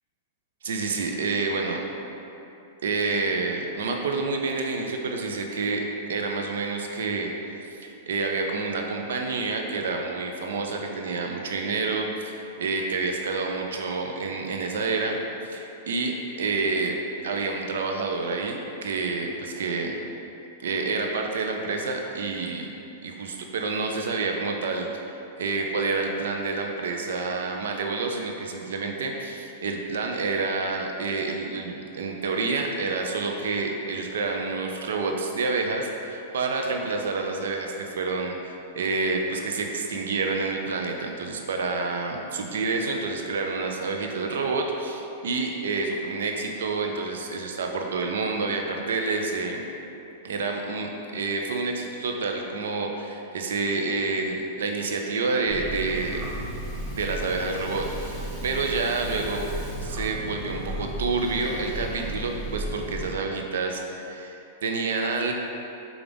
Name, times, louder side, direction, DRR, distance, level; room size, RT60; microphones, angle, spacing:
voice 1, 0.6-1.8 2.8-7.3 7.8-15.2 15.4-17.0 17.2-19.9 20.6-22.7 23.0-24.9 25.4-38.4 38.7-49.7 50.2-56.3 56.9-59.5 59.8-64.4 64.6-65.3, right 3 dB, 85° right, 2 dB, 0.4 m, -28 dB
Rattle (instrument), 55.3-60.4, left 1 dB, 15° left, 1.1 m, -50 dB
sound 1, 55.5-63.1, right 1 dB, 25° right, 0.6 m, -35 dB
5.1 x 2.3 x 3.4 m, 3.0 s
hypercardioid pair, 130°, 0 cm